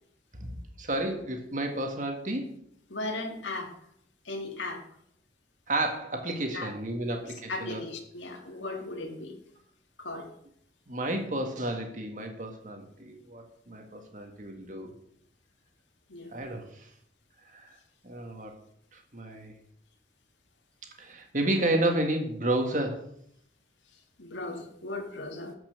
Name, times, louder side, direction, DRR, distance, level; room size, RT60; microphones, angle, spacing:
voice 1, 0.8-2.5 5.7-7.8 10.9-14.9 16.3-16.9 17.5-17.8 18.0-18.5 18.9-19.5 21.0-23.1, right 1 dB, 45° right, 3 dB, 1.9 m, -31 dB
voice 2, 2.9-3.7 4.3-4.8 6.5-6.7 7.0-7.2 7.5-9.4 10.0-10.3 16.1-16.3 24.2-25.5, left 2 dB, 90° left, 3 dB, 1.9 m, -37 dB
12.0 x 6.0 x 6.7 m, 0.70 s
head